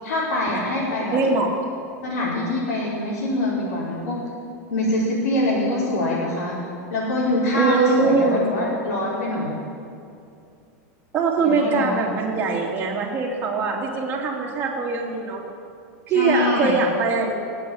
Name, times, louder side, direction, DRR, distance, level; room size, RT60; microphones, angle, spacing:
voice 1, 0.0-1.2 2.0-4.2 4.7-6.5 6.9-9.5 11.4-12.1 16.1-16.7, left 1 dB, 90° left, -10 dB, 5.3 m, -24 dB
voice 2, 1.1-1.5 7.5-8.4 11.1-15.4 16.1-17.3, right 4 dB, 20° right, -4 dB, 2.8 m, -22 dB
19.5 x 8.4 x 8.7 m, 2.5 s
supercardioid pair, 150°, 8 cm